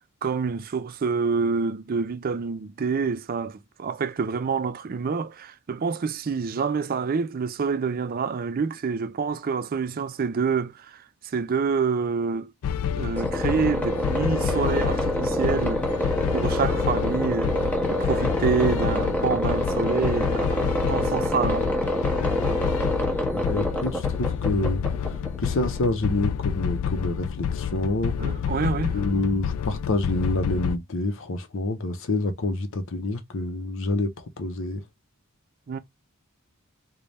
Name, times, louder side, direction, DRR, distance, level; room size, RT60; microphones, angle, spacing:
voice 1, 0.2-11.0 11.3-12.5 13.0-15.9 16.3-17.6 17.9-21.7 28.2-29.0 35.7-35.8, right 5 dB, 40° right, 0.4 m, -27 dB
sound 1, 12.6-30.8, left 8 dB, 85° left, 0.3 m, -28 dB
sound 2, 13.2-25.8, equal, 10° left, 1.0 m, -27 dB
voice 2, 23.3-28.1 28.9-34.1 34.4-34.8, left 2 dB, 60° left, 0.7 m, -27 dB
3.3 x 2.2 x 4.0 m
head